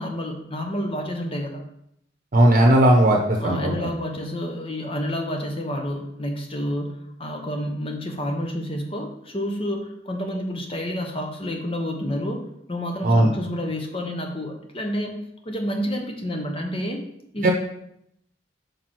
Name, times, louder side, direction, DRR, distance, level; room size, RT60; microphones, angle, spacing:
voice 1, 0.0-1.6 3.4-12.4 12.7-17.0 17.3-17.5, equal, 30° left, 3 dB, 1.0 m, -29 dB
voice 2, 2.3-3.9 13.0-13.3 17.4-17.5, right 1 dB, 45° right, 1 dB, 1.0 m, -17 dB
4.8 x 4.7 x 6.0 m, 0.75 s
head